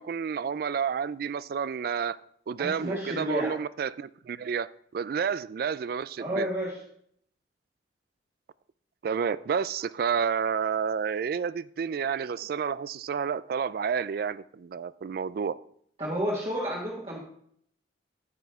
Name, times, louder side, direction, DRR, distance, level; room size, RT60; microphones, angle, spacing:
voice 1, 0.0-2.2 2.5-6.5 9.0-15.6, right 6 dB, 55° right, 0.3 m, -30 dB
voice 2, 2.6-3.6 6.2-6.8 16.0-17.2, equal, 35° right, 1.5 m, -30 dB
9.3 x 7.8 x 3.5 m
head